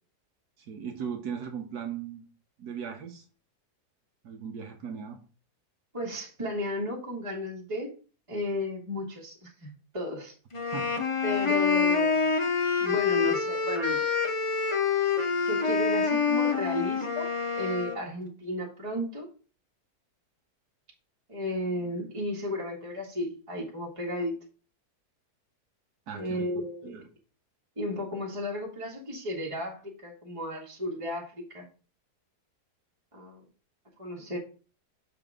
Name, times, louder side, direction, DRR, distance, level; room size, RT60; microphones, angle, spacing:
voice 1, 0.6-2.3 2.6-3.3 4.2-5.2 10.7-10.9 11.5-11.6 26.1-26.5 26.8-27.1, right 7 dB, 80° right, 3 dB, 1.5 m, -38 dB
voice 2, 5.9-7.9 8.3-10.3 11.2-12.3 12.8-14.0 15.5-17.3 17.5-19.3 21.3-24.4 26.1-27.0 27.8-31.7 33.1-33.4 34.0-34.4, left 1 dB, 20° right, -3 dB, 1.9 m, -34 dB
sound 1, 10.5-18.0, left 5 dB, 35° left, 0.5 m, -26 dB
7.2 x 5.9 x 3.7 m, 0.37 s
omnidirectional pair, 1.7 m